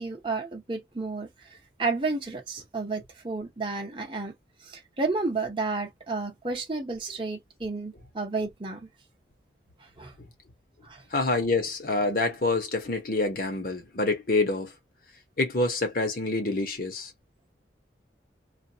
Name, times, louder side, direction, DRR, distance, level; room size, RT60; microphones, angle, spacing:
voice 1, 0.0-4.3 4.6-8.9 10.0-10.1 10.8-11.0, right 3 dB, 25° right, 0.8 m, -32 dB
voice 2, 11.1-14.7 15.4-17.1, left 2 dB, 50° left, 1.0 m, -27 dB
2.5 x 2.2 x 2.8 m
head